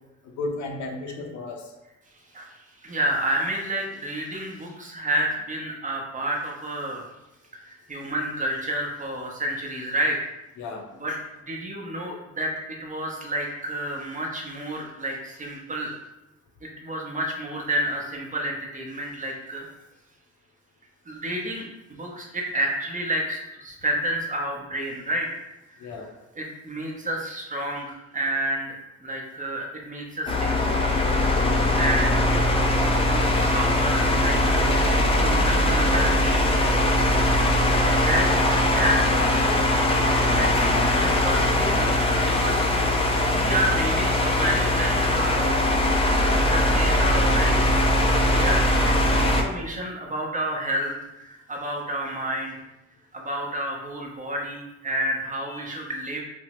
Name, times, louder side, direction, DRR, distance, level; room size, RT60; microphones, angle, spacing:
voice 1, 0.4-1.7 10.6-10.9 25.8-26.1 35.0-35.2 37.2-37.5 55.5-55.7, left 3 dB, 70° left, 2 dB, 0.6 m, -34 dB
voice 2, 2.3-7.0 7.5-10.2 10.9-16.0 16.6-19.7 21.1-25.3 25.7-26.1 26.3-28.8 29.0-31.0 31.6-32.4 32.8-36.7 38.0-39.6 40.1-40.5 40.9-45.6 46.1-47.6 48.3-52.6 53.1-56.2, right 1 dB, 25° right, -1 dB, 0.7 m, -30 dB
sound 1, 30.3-49.4, left 1 dB, 20° left, 0.4 m, -21 dB
3.3 x 2.0 x 2.9 m, 0.94 s
cardioid pair, 90°, 30 cm